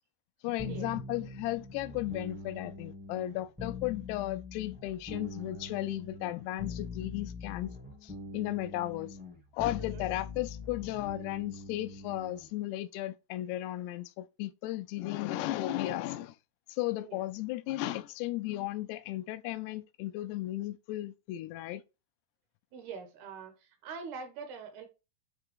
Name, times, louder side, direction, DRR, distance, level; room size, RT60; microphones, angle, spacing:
voice 1, 0.4-7.7 8.0-9.2 9.5-16.4 16.7-21.8, left 15 dB, 85° left, 2.7 m, -35 dB
sound 1, 0.6-12.5, left 3 dB, 10° right, 0.4 m, -43 dB
voice 2, 22.7-23.5 23.8-24.9, right 5 dB, 75° right, 3.4 m, -43 dB
9.1 x 3.8 x 3.7 m
omnidirectional pair, 4.7 m